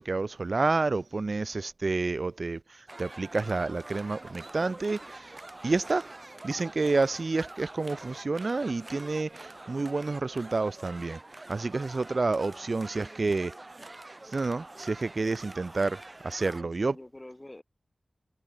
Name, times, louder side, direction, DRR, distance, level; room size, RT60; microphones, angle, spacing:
voice 1, 0.0-5.3 5.6-6.1 6.4-11.2 11.5-13.5 14.3-17.0, right 3 dB, 60° right, 0.5 m, -29 dB
sound 1, 2.9-16.6, right 2 dB, 35° right, 1.5 m, -46 dB
voice 2, 12.6-13.3 16.6-17.6, left 1 dB, 25° left, 5.5 m, -49 dB
cardioid pair, 50°, 0 cm